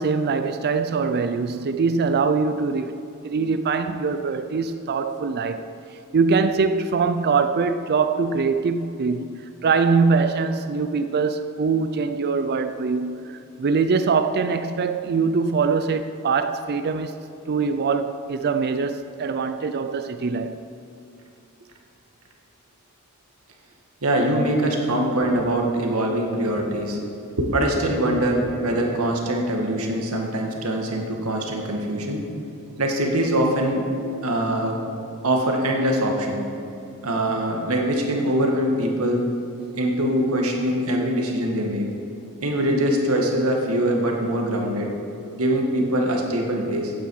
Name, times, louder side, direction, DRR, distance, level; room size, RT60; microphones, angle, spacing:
voice 1, 0.0-2.9 3.2-5.6 6.1-17.1 17.5-20.6, right 4 dB, 50° right, 0.4 m, -23 dB
voice 2, 24.0-27.0 27.4-32.2 32.8-33.9 34.2-34.8 35.2-36.4 37.0-39.3 39.8-41.9 42.4-44.9 45.4-46.9, right 1 dB, 80° right, 1.9 m, -23 dB
14.5 x 9.1 x 4.8 m
head